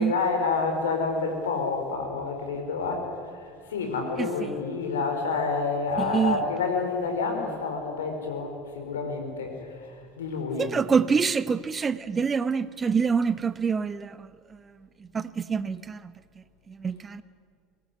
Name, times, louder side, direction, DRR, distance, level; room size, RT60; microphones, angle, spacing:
voice 1, 0.0-10.7, left 4 dB, 75° left, 4.5 m, -29 dB
voice 2, 4.2-4.5 6.0-6.4 10.6-14.6 15.1-16.1 16.7-17.2, right 6 dB, 25° right, 0.9 m, -26 dB
23.5 x 18.5 x 9.7 m
figure-of-eight pair, 75°, 0 cm